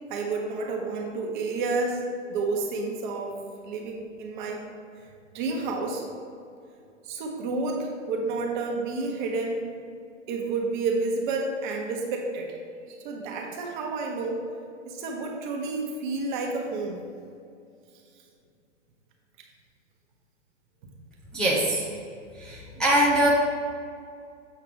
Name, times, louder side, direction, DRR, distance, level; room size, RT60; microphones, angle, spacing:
voice 1, 0.1-3.4 3.6-4.6 5.3-6.0 7.0-9.7 10.3-12.6 12.9-14.4 14.8-17.0 22.7-22.8, right 3 dB, 40° right, 1 dB, 1.2 m, -30 dB
voice 2, 21.3-21.8 22.4-23.3, right 1 dB, ahead, -7 dB, 0.6 m, -22 dB
7.5 x 5.6 x 3.5 m, 2.4 s
figure-of-eight pair, 110°, 37 cm